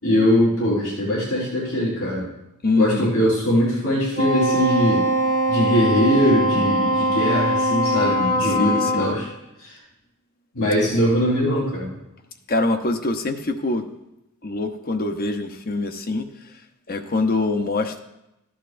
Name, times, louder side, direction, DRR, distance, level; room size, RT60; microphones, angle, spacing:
voice 1, 0.0-2.3 2.7-5.1 5.5-9.3 9.6-9.7 10.5-11.9, equal, 85° left, -7 dB, 3.9 m, -21 dB
voice 2, 2.6-3.1 8.4-9.1 12.5-13.8 14.4-16.5 16.9-18.0, left 2 dB, 45° left, 7 dB, 0.8 m, -24 dB
Wind instrument woodwind instrument, 4.1-9.2, right 1 dB, 40° right, 0.7 m, -21 dB
15.0 x 10.0 x 2.5 m, 0.91 s
head